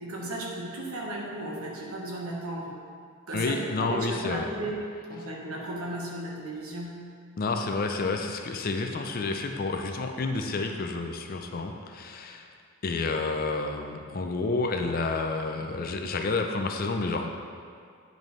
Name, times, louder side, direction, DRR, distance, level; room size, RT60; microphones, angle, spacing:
voice 1, 0.0-2.8 3.3-7.0, right 1 dB, 75° right, -3 dB, 1.3 m, -35 dB
voice 2, 3.3-4.5 7.4-12.5 12.8-17.3, left 3 dB, 40° left, 4 dB, 0.4 m, -30 dB
8.9 x 5.3 x 3.2 m, 2.2 s
head